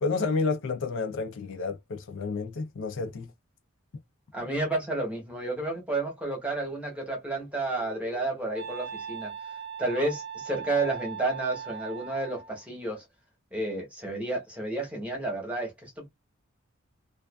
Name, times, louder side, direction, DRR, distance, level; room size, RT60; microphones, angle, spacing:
voice 1, 0.0-3.3, left 4 dB, 60° left, 0.4 m, -30 dB
voice 2, 4.3-9.3 9.8-13.0 13.5-16.1, right 2 dB, 5° right, 0.9 m, -31 dB
Wind instrument woodwind instrument, 7.2-12.6, right 7 dB, 55° right, 0.7 m, -40 dB
2.4 x 2.3 x 2.2 m
head